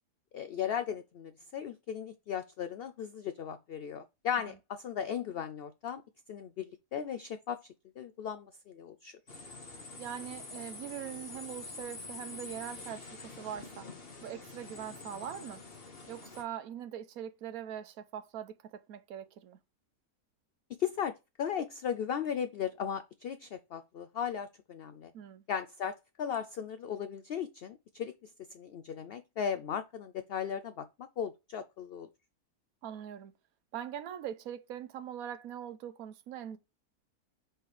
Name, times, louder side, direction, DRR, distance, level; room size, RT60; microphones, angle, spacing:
voice 1, 0.3-6.0 6.3-7.6 8.0-9.2 20.8-25.1 25.5-30.9 31.2-32.1, left 8 dB, 70° left, 0.5 m, -37 dB
sound 1, 9.3-16.4, left 3 dB, 40° left, 1.7 m, -46 dB
voice 2, 10.0-13.9 14.2-15.6 16.1-19.6 25.1-25.4 32.8-33.3 33.7-36.6, right 10 dB, 75° right, 1.2 m, -42 dB
5.7 x 5.5 x 3.2 m
omnidirectional pair, 1.5 m